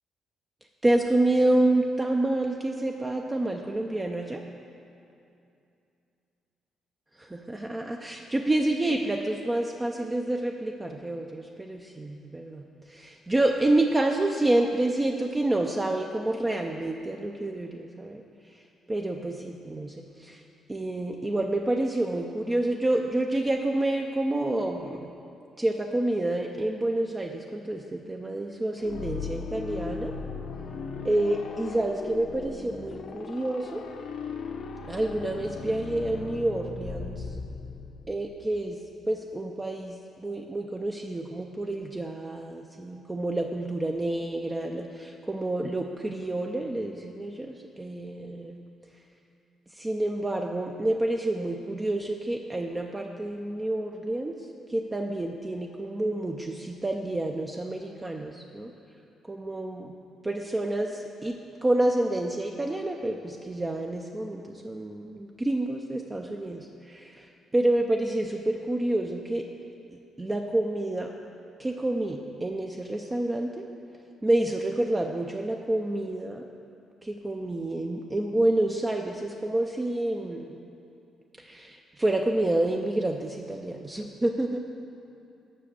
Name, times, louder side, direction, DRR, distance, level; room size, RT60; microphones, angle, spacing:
voice 1, 0.8-4.4 7.5-18.2 18.9-20.4 20.7-25.1 25.6-30.1 31.0-33.8 34.9-37.3 38.1-38.8 39.1-48.6 49.7-54.4 54.7-58.7 59.3-59.9 60.2-61.3 61.6-69.4 70.2-71.1 71.6-73.7 74.2-76.4 77.0-80.5 81.4-84.6, right 1 dB, 20° right, 2 dB, 0.5 m, -28 dB
sound 1, 28.8-38.5, left 5 dB, 65° left, 0.7 m, -38 dB
7.6 x 5.8 x 6.7 m, 2.6 s
cardioid pair, 90°, 0 cm